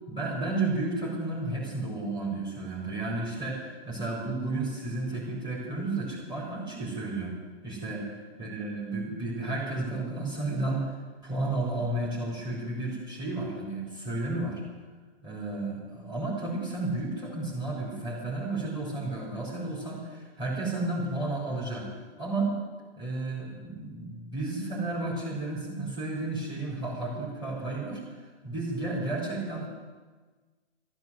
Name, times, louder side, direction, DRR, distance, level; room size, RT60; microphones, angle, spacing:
voice 1, 0.1-7.3 7.6-10.9 11.2-14.6 15.2-21.9 22.2-22.5 23.0-29.7, right 2 dB, 15° right, -5 dB, 4.5 m, -32 dB
13.5 x 13.0 x 7.7 m, 1.3 s
hypercardioid pair, 135°, 32 cm